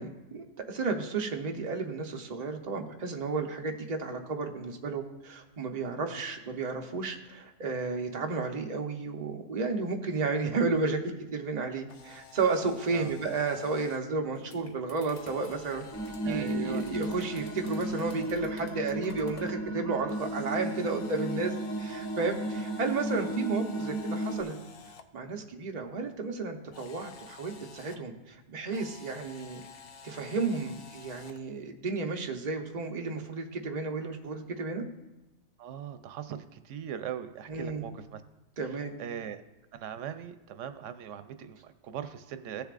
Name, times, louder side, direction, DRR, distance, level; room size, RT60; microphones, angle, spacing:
voice 1, 0.0-11.0 11.3-15.9 16.2-21.5 21.8-24.5 25.1-29.6 30.0-34.9 37.5-37.9 38.6-39.0, right 4 dB, 40° right, 2 dB, 0.9 m, -32 dB
Camera, 11.8-14.0 15.1-18.4 20.1-25.0 26.7-28.0 28.7-31.4, left 6 dB, 60° left, 0.8 m, -50 dB
sound 1, 14.2-19.6, left 1 dB, 40° left, 1.2 m, -52 dB
sound 2, 15.9-24.4, right 1 dB, 20° left, 0.4 m, -34 dB
voice 2, 16.2-16.8 35.6-38.2 39.0-39.4 39.7-42.6, right 9 dB, 90° right, 10 dB, 0.9 m, -40 dB
15.5 x 6.9 x 2.5 m, 1.0 s
omnidirectional pair, 1.2 m